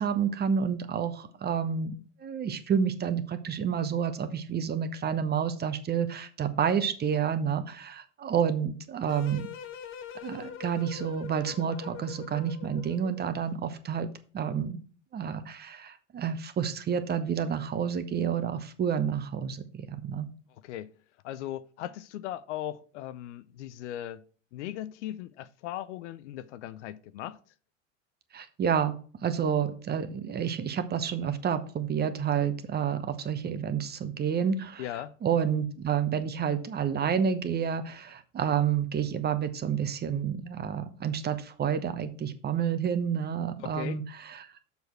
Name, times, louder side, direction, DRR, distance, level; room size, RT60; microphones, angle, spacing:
voice 1, 0.0-9.5 10.2-14.1 14.3-14.8 15.1-20.3 28.3-34.8 35.2-44.5, right 7 dB, 25° right, 1.0 m, -29 dB
sound 1, 9.1-13.4, left 8 dB, 30° left, 1.0 m, -43 dB
voice 2, 21.2-24.2 24.5-27.4 34.8-35.1 43.6-44.0, left 12 dB, 65° left, 0.7 m, -38 dB
7.0 x 6.4 x 4.5 m
hypercardioid pair, 90°, 39 cm